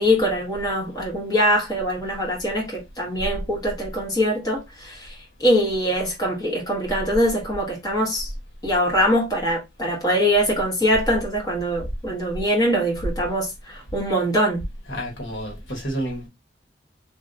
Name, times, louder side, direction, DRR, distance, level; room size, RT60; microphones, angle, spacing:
voice 1, 0.0-8.3 8.6-14.6, equal, 20° left, 1.1 m, -23 dB
voice 2, 14.9-16.3, right 1 dB, 85° left, 1.3 m, -30 dB
2.9 x 2.6 x 2.6 m
head